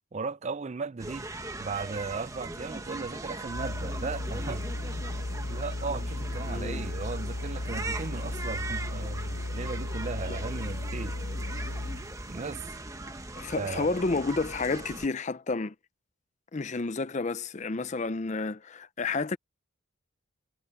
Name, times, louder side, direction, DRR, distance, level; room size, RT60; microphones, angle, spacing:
voice 1, 0.1-1.3 1.6-4.6 5.5-11.2 12.3-12.8 13.6-13.9, right 4 dB, 30° right, 0.4 m, -36 dB
sound 1, 1.0-15.1, right 2 dB, 15° right, 1.2 m, -40 dB
sound 2, 3.5-12.2, left 2 dB, 90° left, 1.0 m, -35 dB
voice 2, 6.5-6.8 10.3-10.4 13.4-15.7 16.5-19.4, left 3 dB, 35° left, 0.5 m, -30 dB
head